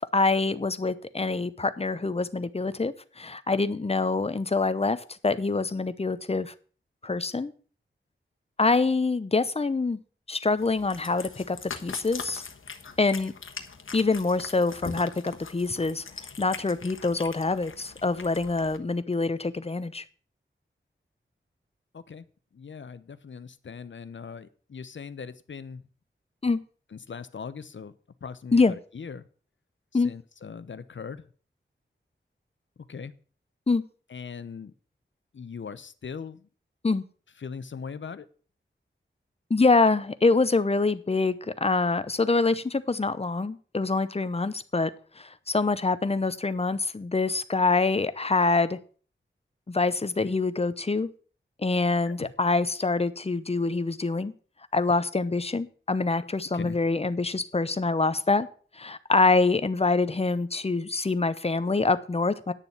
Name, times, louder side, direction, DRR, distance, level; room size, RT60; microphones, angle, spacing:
voice 1, 0.0-5.0 5.2-6.5 7.0-7.5 8.6-10.0 10.3-11.6 11.8-12.4 13.0-13.3 13.9-16.0 16.4-20.0 26.4-26.6 28.5-28.8 29.9-30.1 33.7-33.8 36.8-37.0 39.5-41.4 41.6-44.9 45.2-48.8 49.7-51.1 51.6-54.3 54.7-58.5 58.8-62.5, left 3 dB, 30° left, 14 dB, 0.8 m, -25 dB
Cat, 10.6-18.8, left 5 dB, 85° left, 1.3 m, -42 dB
voice 2, 22.5-25.8 26.9-27.9 28.2-29.2 30.0-31.2 32.9-33.1 34.1-34.7 35.3-36.4 37.4-38.2 52.1-52.3 56.5-56.8, left 6 dB, 70° left, 14 dB, 0.8 m, -40 dB
10.0 x 6.8 x 7.1 m, 0.41 s
wide cardioid pair, 100°, 20 cm